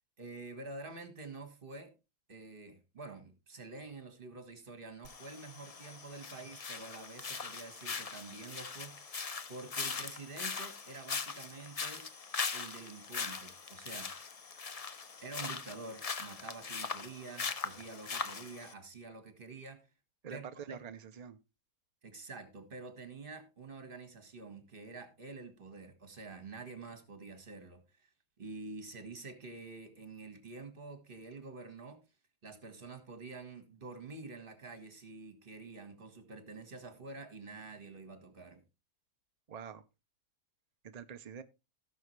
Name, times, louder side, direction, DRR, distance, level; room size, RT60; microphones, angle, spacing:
voice 1, 0.2-1.9 2.3-9.1 9.5-12.1 12.5-14.1 15.2-19.9 20.3-20.8 22.0-28.1 28.4-32.0 32.4-38.6, right 3 dB, 35° right, 1.8 m, -48 dB
sound 1, 5.0-18.7, left 5 dB, 45° left, 0.4 m, -41 dB
voice 2, 20.2-21.4 39.5-39.8 40.8-41.4, right 7 dB, 70° right, 0.3 m, -46 dB
17.0 x 6.3 x 3.2 m
omnidirectional pair, 1.7 m